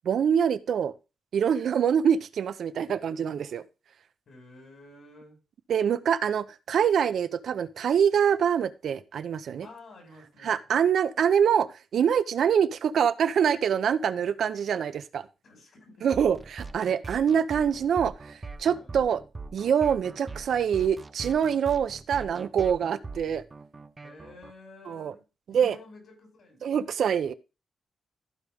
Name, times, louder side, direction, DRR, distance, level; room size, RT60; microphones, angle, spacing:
voice 1, 0.0-0.9 1.3-3.6 5.7-9.7 10.4-15.3 16.0-19.2 19.5-23.4 24.9-25.1 25.5-25.7 26.6-27.3, right 8 dB, 70° right, 0.8 m, -25 dB
voice 2, 4.3-5.4 9.6-10.6 15.4-16.1 18.7-19.0 24.0-25.2 25.5-27.2, left 2 dB, 60° left, 5.9 m, -51 dB
sound 1, 16.1-24.5, right 3 dB, 25° right, 0.7 m, -42 dB
14.5 x 5.2 x 3.5 m
cardioid pair, 125°, 0 cm